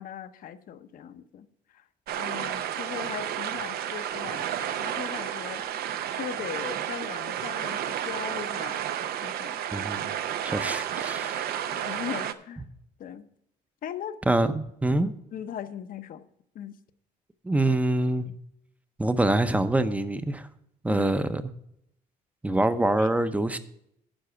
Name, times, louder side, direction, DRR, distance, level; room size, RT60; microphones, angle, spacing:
voice 1, 0.0-1.8 2.2-8.9 9.2-9.6 11.7-12.6 13.0-13.3 13.8-14.2 15.3-16.3 16.5-16.8 20.9-21.0 23.0-23.1, left 9 dB, 55° left, 0.7 m, -39 dB
sound 1, 2.1-12.3, right 10 dB, 65° right, 0.6 m, -32 dB
voice 2, 9.7-10.0 10.4-11.4 14.3-15.1 17.4-18.3 19.0-20.5 20.8-21.4 22.4-23.6, right 2 dB, 10° right, 0.6 m, -25 dB
11.5 x 4.8 x 6.8 m
cardioid pair, 110°, 17 cm